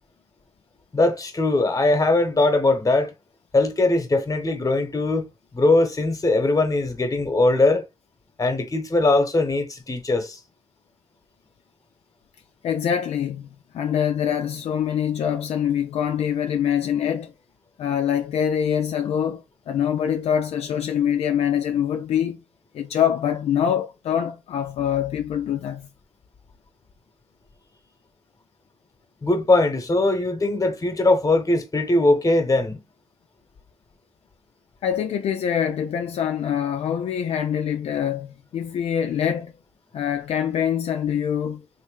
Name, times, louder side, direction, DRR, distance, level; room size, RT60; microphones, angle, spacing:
voice 1, 0.9-3.1 3.5-5.3 5.5-7.8 8.4-10.4 29.2-32.8, left 2 dB, 30° left, 1.1 m, -20 dB
voice 2, 12.6-17.3 17.8-22.4 22.7-25.9 34.8-39.5 39.9-41.6, left 9 dB, 70° left, 0.4 m, -24 dB
3.2 x 2.7 x 3.2 m
supercardioid pair, 50°, 11 cm